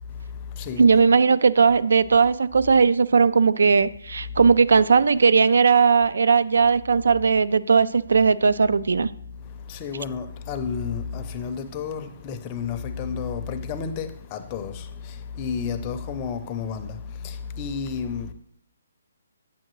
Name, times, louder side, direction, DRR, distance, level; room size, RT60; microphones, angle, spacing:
voice 1, 0.0-0.9 4.3-4.4 9.2-18.3, left 6 dB, 20° left, 0.5 m, -32 dB
voice 2, 0.8-9.1, right 5 dB, 75° right, 0.3 m, -18 dB
8.7 x 7.6 x 3.1 m
hypercardioid pair, 170°, 0 cm